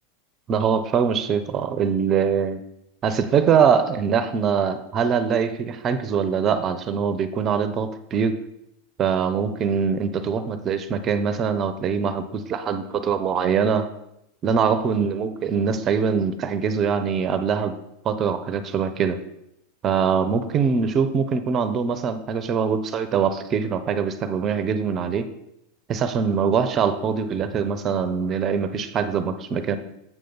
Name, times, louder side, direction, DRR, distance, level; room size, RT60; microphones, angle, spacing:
voice 1, 0.5-2.6 3.0-8.3 9.0-13.9 14.4-17.7 18.0-19.2 19.8-25.3 25.9-29.8, right 6 dB, 35° right, 11 dB, 0.7 m, -23 dB
7.5 x 6.7 x 3.9 m, 0.82 s
hypercardioid pair, 100°, 0 cm